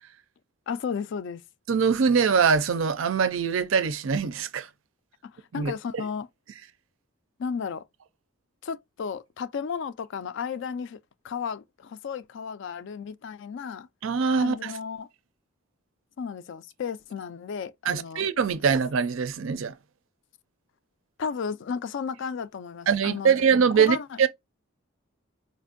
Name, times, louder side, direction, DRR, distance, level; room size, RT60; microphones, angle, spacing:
voice 1, 0.7-1.4 5.2-6.3 7.4-7.8 8.6-11.0 11.2-13.9 14.4-15.1 16.2-18.3 21.2-23.4 23.8-24.2, left 6 dB, 55° left, 0.3 m, -33 dB
voice 2, 1.7-4.7 5.5-5.7 14.0-14.7 17.9-19.7 22.9-24.3, right 6 dB, 65° right, 0.4 m, -23 dB
4.3 x 2.5 x 2.5 m
head